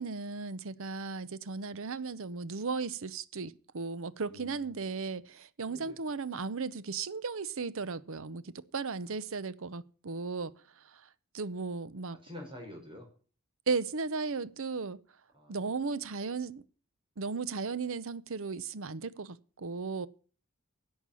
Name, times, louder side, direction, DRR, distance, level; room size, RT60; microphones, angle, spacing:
voice 1, 0.0-11.1 11.3-12.2 13.7-15.0 15.5-16.6 17.2-20.1, right 4 dB, 65° right, 0.7 m, -36 dB
voice 2, 4.2-4.9 5.6-6.0 12.1-13.1 15.3-15.7, left 1 dB, 25° right, 5.2 m, -48 dB
11.0 x 7.2 x 8.3 m
head